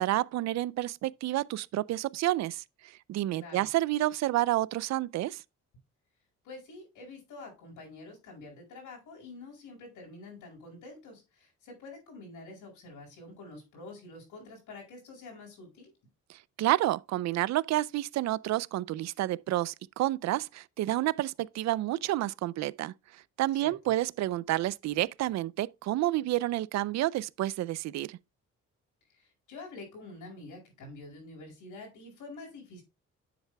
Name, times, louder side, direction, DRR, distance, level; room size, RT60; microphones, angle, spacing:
voice 1, 0.0-5.4 16.6-22.9 23.4-28.2, right 15 dB, 65° right, 0.4 m, -29 dB
voice 2, 3.4-3.7 6.4-15.9 23.6-23.7 29.1-32.8, left 3 dB, 85° left, 5.3 m, -47 dB
10.0 x 7.4 x 2.2 m
cardioid pair, 90°, 30 cm